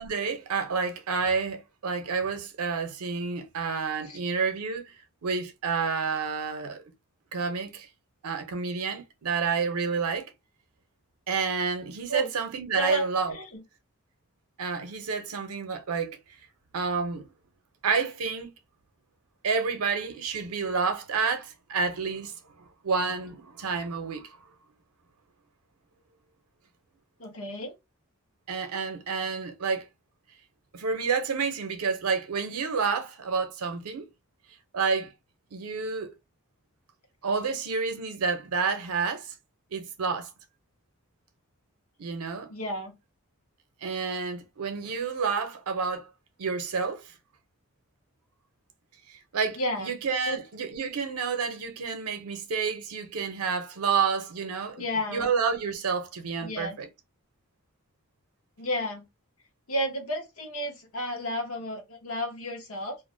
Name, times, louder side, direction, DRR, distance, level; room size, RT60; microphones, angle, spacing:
voice 1, 0.0-4.9 5.2-6.8 7.3-7.9 8.2-10.3 11.3-13.3 14.6-16.2 16.7-17.3 17.8-18.5 19.4-22.3 22.8-24.4 28.5-29.9 30.7-34.1 34.7-35.1 35.5-36.1 37.2-39.3 39.7-40.3 42.0-42.5 43.8-46.1 46.4-47.1 49.1-54.8 55.1-56.9, right 5 dB, 90° right, 0.6 m, -29 dB
voice 2, 12.7-13.1 13.3-13.6 27.2-27.8 42.5-43.0 49.6-49.9 50.2-50.4 54.7-55.3 56.4-56.8 58.6-59.0 59.7-63.0, equal, 75° left, 0.9 m, -32 dB
2.4 x 2.1 x 2.5 m
head